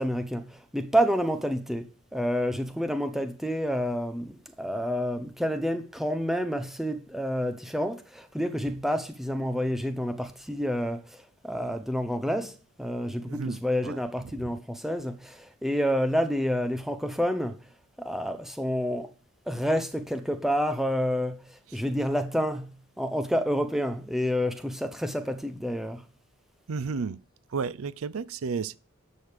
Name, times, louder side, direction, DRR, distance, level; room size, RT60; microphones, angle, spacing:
voice 1, 0.0-1.9 2.1-17.6 18.0-19.1 19.5-26.0, equal, ahead, 0.8 m, -29 dB
voice 2, 13.2-14.5 21.7-21.8 26.7-27.2 27.5-28.8, right 5 dB, 70° right, 0.5 m, -33 dB
10.0 x 6.4 x 5.1 m
head